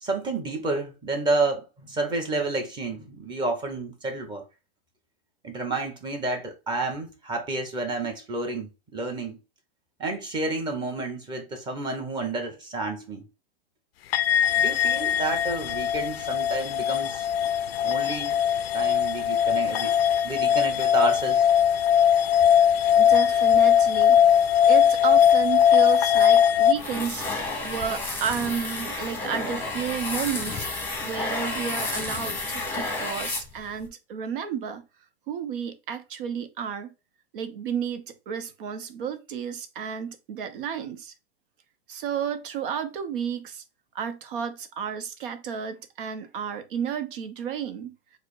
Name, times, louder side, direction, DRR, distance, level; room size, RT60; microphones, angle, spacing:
voice 1, 0.0-4.4 5.4-9.4 10.0-13.3 14.6-17.3 17.8-18.4 18.7-19.9 20.2-21.5, right 3 dB, 15° right, 1.0 m, -30 dB
sound 1, 14.1-26.7, left 9 dB, 90° left, 0.5 m, -20 dB
voice 2, 23.0-24.2 24.6-27.2 27.6-30.7 31.0-34.9 35.3-36.9 37.3-41.1 41.9-43.6 43.9-47.9, right 7 dB, 60° right, 0.8 m, -32 dB
sound 2, 26.7-33.9, left 3 dB, 5° left, 1.0 m, -31 dB
4.8 x 2.1 x 4.7 m
hypercardioid pair, 145°, 29 cm